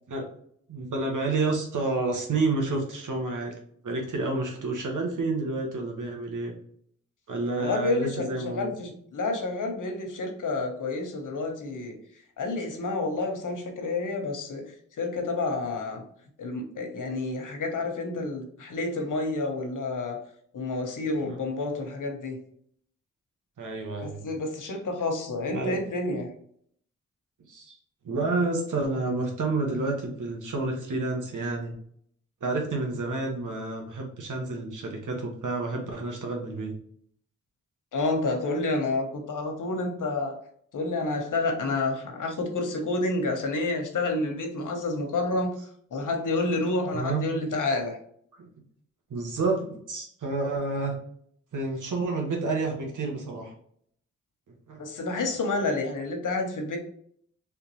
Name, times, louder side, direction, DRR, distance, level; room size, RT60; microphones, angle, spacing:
voice 1, 0.7-3.5 3.8-6.5 7.3-8.7 21.2-21.4 23.6-24.2 25.5-25.8 27.5-27.8 28.0-31.7 32.4-36.7 46.9-47.2 48.4-48.5 49.1-51.0 51.5-53.5 54.7-54.8, right 3 dB, 75° right, 1 dB, 1.4 m, -29 dB
voice 2, 7.6-12.0 12.4-16.0 16.4-20.2 20.5-22.4 24.0-26.3 37.9-40.4 40.7-45.6 45.9-48.0 54.8-56.8, left 2 dB, 75° left, 3 dB, 1.1 m, -29 dB
3.6 x 3.4 x 3.0 m, 0.64 s
cardioid pair, 60°, 32 cm